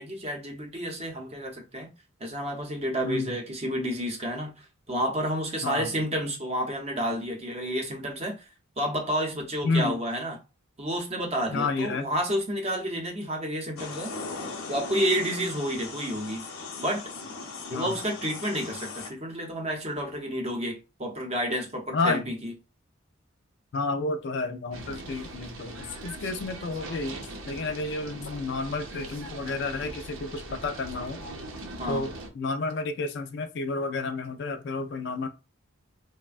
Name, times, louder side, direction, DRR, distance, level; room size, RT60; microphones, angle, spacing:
voice 1, 0.0-1.9 2.2-8.5 8.8-10.4 10.8-14.1 14.7-16.4 16.8-17.1 17.7-22.5 31.8-32.0, equal, 30° right, 0.6 m, -30 dB
voice 2, 3.0-3.4 5.6-5.9 9.6-10.0 11.5-12.0 17.7-17.9 21.9-22.2 23.7-27.2 27.5-31.2 31.9-35.3, left 3 dB, 55° left, 0.3 m, -30 dB
sound 1, 13.8-19.1, left 4 dB, 90° left, 0.7 m, -38 dB
sound 2, 24.7-32.3, right 2 dB, 75° right, 0.7 m, -41 dB
3.3 x 2.1 x 2.3 m
head